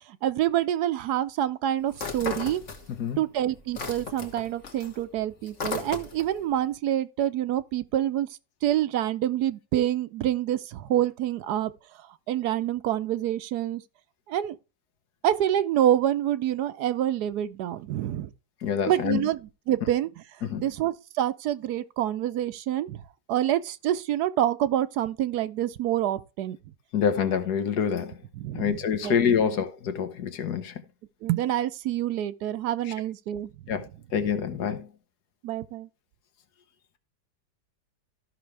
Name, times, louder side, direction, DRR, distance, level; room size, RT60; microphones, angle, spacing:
voice 1, 0.0-2.6 3.2-8.3 8.6-13.8 14.3-14.6 15.2-18.3 18.9-26.6 28.3-29.5 31.2-33.8 35.4-35.9, right 12 dB, 80° right, 1.2 m, -27 dB
sound 1, 1.9-3.2 3.5-6.4, left 4 dB, 50° left, 1.9 m, -36 dB
voice 2, 18.6-19.2 20.5-20.6 26.9-28.2 28.5-30.7 33.7-34.9, left 7 dB, 75° left, 1.7 m, -26 dB
14.0 x 6.0 x 3.3 m
omnidirectional pair, 1.7 m